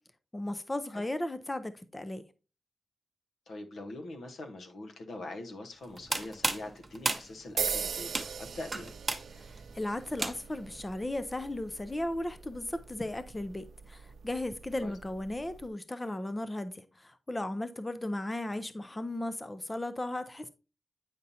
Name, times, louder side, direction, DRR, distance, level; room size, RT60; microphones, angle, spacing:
voice 1, 0.3-2.2 9.4-20.5, left 1 dB, 15° left, 0.4 m, -36 dB
voice 2, 3.5-8.1 8.4-9.0 14.8-15.0, left 2 dB, 80° left, 1.0 m, -43 dB
sound 1, 5.8-10.7, right 2 dB, 20° right, 0.6 m, -35 dB
sound 2, 7.6-15.7, right 6 dB, 75° right, 0.6 m, -41 dB
8.6 x 5.4 x 2.7 m
wide cardioid pair, 150°, 0 cm